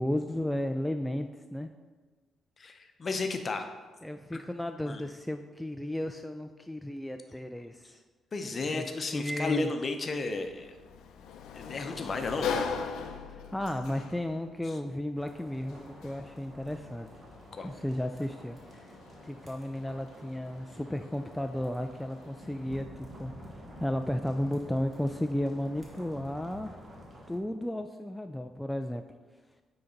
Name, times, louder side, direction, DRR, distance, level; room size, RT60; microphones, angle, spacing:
voice 1, 0.0-1.7 4.0-8.0 8.7-8.8 9.1-9.7 13.3-17.1 17.6-18.6 18.9-19.0 19.2-23.3 23.8-26.8 27.3-29.0, left 1 dB, 5° left, 6 dB, 0.3 m, -34 dB
voice 2, 2.6-3.7 4.9-5.0 8.3-10.7 11.5-12.7 14.7-14.8 17.5-17.7, left 3 dB, 40° left, 6 dB, 0.7 m, -33 dB
Sliding door, 10.1-22.8, left 6 dB, 80° left, 0.5 m, -42 dB
sound 1, 15.2-27.4, equal, 35° right, 1.4 m, -50 dB
9.0 x 3.9 x 4.0 m, 1.4 s
cardioid pair, 90°, 0 cm